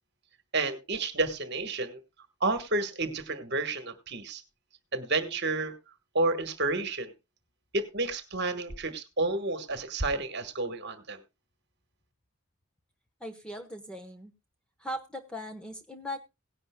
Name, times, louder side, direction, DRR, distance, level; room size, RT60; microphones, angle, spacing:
voice 1, 0.5-2.0 2.4-4.4 4.9-5.7 6.1-7.1 7.7-11.2, right 2 dB, 50° right, 9 dB, 1.4 m, -30 dB
voice 2, 13.2-14.3 14.8-16.2, equal, 5° left, 4 dB, 1.1 m, -39 dB
17.5 x 11.0 x 2.2 m, 0.25 s
head